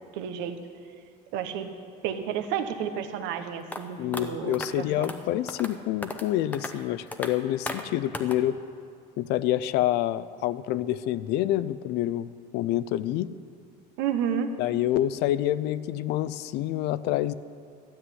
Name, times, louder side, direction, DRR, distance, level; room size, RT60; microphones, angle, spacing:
voice 1, 0.1-0.6 1.3-1.7 2.0-5.1 14.0-14.5, right 8 dB, 85° right, 8 dB, 1.1 m, -31 dB
sound 1, 3.7-3.8 4.1-4.2 4.5-4.7 5.0-5.2 5.5-5.7 6.0-6.3 6.5-6.7 7.1-7.3 7.7-7.8 8.1-8.4, left 2 dB, 10° left, 0.7 m, -34 dB
voice 2, 4.0-8.6 9.2-13.3 14.6-17.3, left 13 dB, 65° left, 17 dB, 0.5 m, -27 dB
12.5 x 7.9 x 9.8 m, 2.3 s
cardioid pair, 150°, 18 cm